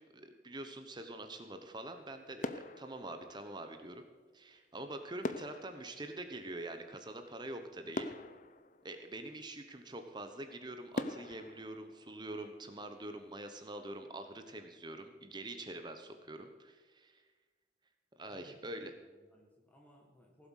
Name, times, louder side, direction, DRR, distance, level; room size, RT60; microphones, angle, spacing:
voice 1, 0.0-4.0 4.3-8.1 8.8-17.2 18.2-18.9, right 1 dB, 25° right, 7 dB, 0.9 m, -45 dB
sound 1, 1.7-2.1 2.4-3.9 5.2-7.1 7.6-7.7 7.9-9.5 10.1-10.2 10.9-12.8 13.2-13.4, left 2 dB, 45° left, 0.7 m, -43 dB
voice 2, 18.3-18.6 19.0-20.5, equal, 10° left, 0 dB, 1.5 m, -63 dB
16.5 x 7.7 x 6.4 m, 1.3 s
head